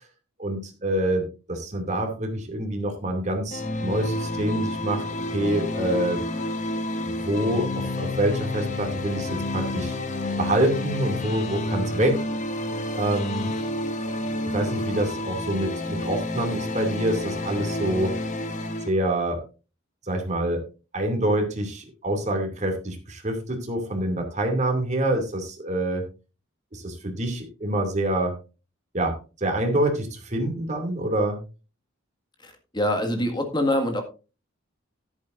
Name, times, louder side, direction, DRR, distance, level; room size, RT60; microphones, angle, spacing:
voice 1, 0.4-5.0 5.3-6.2 7.1-9.9 10.4-12.2 13.0-13.5 14.4-18.1 18.8-19.4 20.1-20.6 20.9-26.0 26.7-28.3 28.9-31.4, right 1 dB, 35° right, 3 dB, 2.6 m, -26 dB
sound 1, 3.5-18.9, left 1 dB, 35° left, 1.2 m, -29 dB
voice 2, 32.4-34.0, left 1 dB, 20° left, 4 dB, 1.9 m, -25 dB
13.0 x 11.0 x 2.6 m, 0.32 s
head